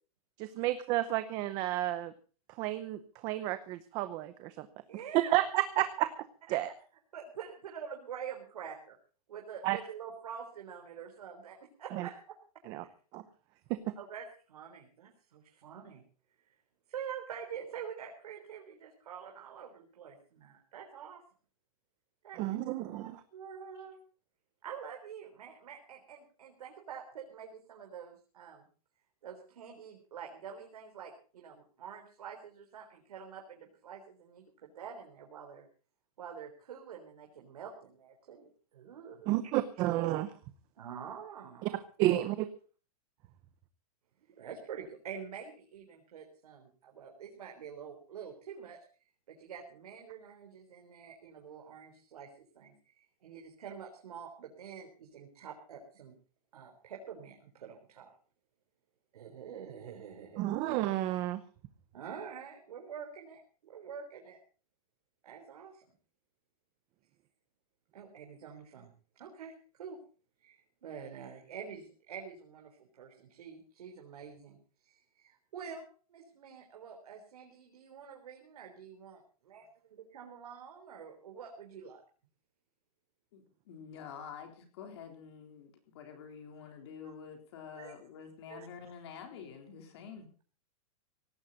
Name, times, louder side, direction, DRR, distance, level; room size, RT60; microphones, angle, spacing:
voice 1, 0.4-2.1 2.6-4.7 5.3-6.1 6.5-6.7 9.6-9.8 11.9-12.1 12.7-12.8 13.1-13.2 13.7-13.9 22.4-23.2 39.3-40.3 41.6-41.7 42.0-42.5 60.4-61.4, right 15 dB, 20° right, 12 dB, 0.7 m, -31 dB
voice 2, 4.9-5.3 6.5-6.6 7.1-9.0 9.3-12.4 14.0-16.0 16.9-21.2 22.2-22.4 22.9-24.0 24.6-28.7 29.2-35.7 36.2-39.5 40.8-42.2 44.3-48.8 49.3-56.1 56.5-58.1 59.1-60.5 61.9-64.4 65.2-65.8 67.9-70.0 70.4-74.6 74.8-79.7 80.0-82.0 87.0-87.1 87.8-88.0 88.5-88.7, right 7 dB, 80° right, 2 dB, 3.9 m, -47 dB
voice 3, 83.3-90.3, left 7 dB, 45° left, 5 dB, 3.7 m, -48 dB
18.0 x 15.5 x 4.1 m, 0.39 s
supercardioid pair, 180°, 19 cm